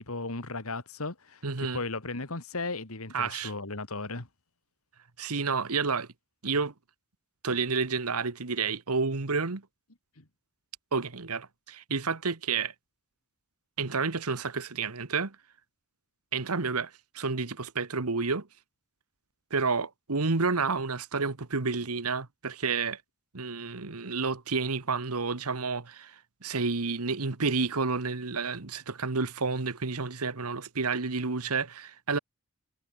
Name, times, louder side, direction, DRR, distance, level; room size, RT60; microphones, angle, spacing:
voice 1, 0.0-4.3 10.2-10.3, left 3 dB, 75° left, 2.5 m, -36 dB
voice 2, 1.4-1.8 3.1-3.5 5.2-6.1 6.4-6.7 7.4-9.6 10.9-12.7 13.8-15.3 16.3-16.9 17.1-18.5 19.5-23.0 23.3-26.1 26.4-32.2, right 4 dB, 90° right, 1.4 m, -30 dB
head